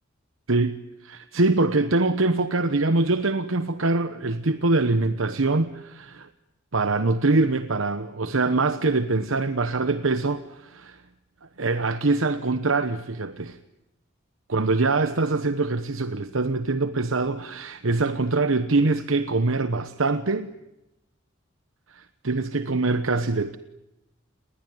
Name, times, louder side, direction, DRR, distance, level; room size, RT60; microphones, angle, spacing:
voice 1, 1.0-6.3 6.7-11.0 11.6-13.6 14.5-20.5 21.9-23.6, right 3 dB, 80° right, 1.1 m, -24 dB
29.5 x 21.0 x 9.5 m
head